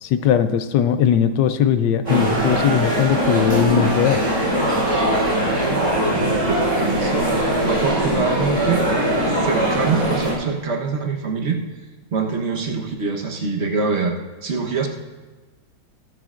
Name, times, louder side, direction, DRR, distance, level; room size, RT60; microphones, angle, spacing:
voice 1, 0.0-4.2, left 9 dB, 75° left, 11 dB, 1.1 m, -19 dB
sound 1, 2.0-10.3, right 1 dB, 15° right, 3.9 m, -21 dB
voice 2, 6.1-8.9 9.3-11.6 12.1-14.9, right 5 dB, 45° right, 1 dB, 1.0 m, -24 dB
20.5 x 7.5 x 2.5 m, 1.3 s
omnidirectional pair, 2.2 m